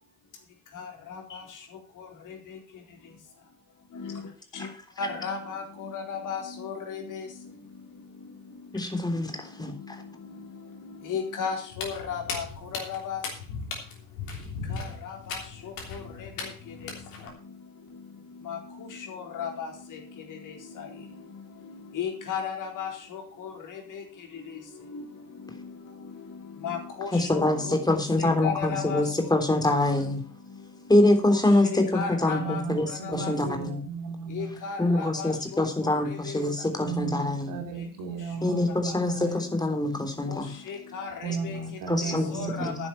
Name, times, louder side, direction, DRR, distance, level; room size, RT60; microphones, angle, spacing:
voice 1, 0.7-1.6 2.0-2.6 3.9-4.2 4.5-4.7 5.0-7.3 9.6-9.8 10.2-10.5 10.8-12.5 12.7-13.2 14.7-16.9 18.4-21.1 21.6-24.0 24.3-24.5 24.8-25.7 26.0-29.3 31.3-33.3 34.3-36.4 38.9-39.0 40.3-42.9, left 6 dB, 50° left, 2 dB, 4.1 m, -36 dB
voice 2, 8.7-10.0 27.1-30.2 30.9-33.8 34.8-37.6 38.4-40.5 41.9-42.9, left 1 dB, 10° left, 5 dB, 3.4 m, -25 dB
Walk footsteps, 11.7-17.3, left 4 dB, 70° left, 3.4 m, -37 dB
voice 3, 32.4-35.3 36.8-39.4 41.2-42.9, right 5 dB, 50° right, 6 dB, 2.7 m, -35 dB
12.5 x 10.0 x 4.3 m, 0.41 s
figure-of-eight pair, 55°, 41 cm